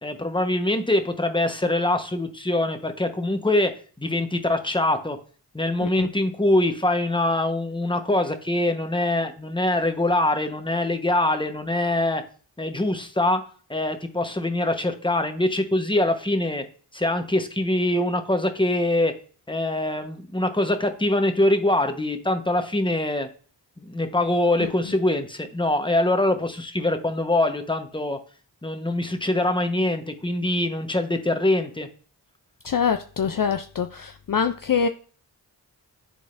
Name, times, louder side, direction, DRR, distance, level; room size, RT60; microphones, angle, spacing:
voice 1, 0.0-3.7 4.0-5.2 5.5-12.2 12.6-13.4 13.7-16.6 16.9-19.1 19.5-23.3 23.8-28.2 28.6-31.9, left 1 dB, 10° left, 7 dB, 1.1 m, -23 dB
voice 2, 32.6-34.9, left 6 dB, 50° left, 8 dB, 0.5 m, -24 dB
12.0 x 3.9 x 2.6 m, 0.42 s
cardioid pair, 50°, 44 cm